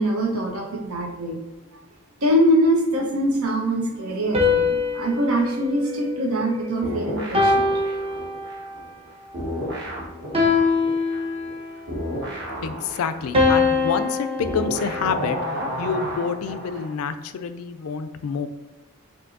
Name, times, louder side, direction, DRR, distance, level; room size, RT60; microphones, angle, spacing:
voice 1, 0.0-1.4 2.2-4.6 4.9-7.6, equal, 80° right, 1 dB, 0.9 m, -23 dB
sound 1, 4.3-6.8 7.3-8.8 10.3-11.8 13.3-15.7, left 3 dB, 25° right, 0.6 m, -23 dB
sound 2, 6.8-9.1 9.3-16.9, equal, 50° right, 1.3 m, -32 dB
voice 2, 12.6-15.4 15.8-18.5, left 6 dB, 80° left, 11 dB, 0.4 m, -27 dB
5.8 x 2.7 x 2.5 m, 1.2 s
head